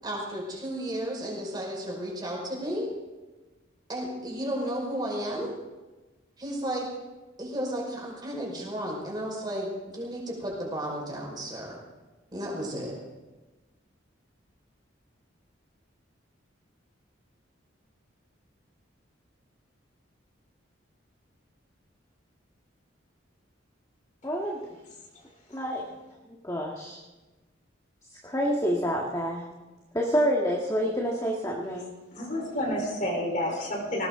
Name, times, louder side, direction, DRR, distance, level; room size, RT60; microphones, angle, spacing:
voice 1, 0.0-2.9 3.9-5.5 6.4-6.9 7.4-11.8 12.3-12.9, right 1 dB, 20° right, -2 dB, 5.2 m, -33 dB
voice 2, 24.2-24.6 25.5-25.8 26.4-27.0 28.2-29.4 29.9-31.9, equal, 15° left, -2 dB, 1.8 m, -27 dB
voice 3, 32.1-34.1, left 1 dB, 40° left, 1 dB, 4.1 m, -29 dB
19.5 x 19.0 x 3.9 m, 1.2 s
head